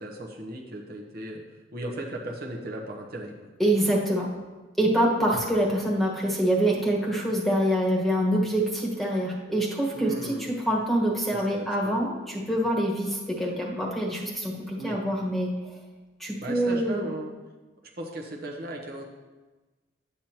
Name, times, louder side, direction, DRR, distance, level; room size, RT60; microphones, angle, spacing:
voice 1, 0.0-1.4 1.7-3.3 9.9-10.5 11.3-11.9 14.8-15.0 16.4-17.3 18.0-19.0, right 1 dB, 55° right, -1 dB, 1.0 m, -36 dB
voice 2, 3.6-4.3 4.8-15.7 16.2-17.1, right 1 dB, ahead, -3 dB, 1.4 m, -25 dB
10.5 x 8.3 x 2.9 m, 1.2 s
head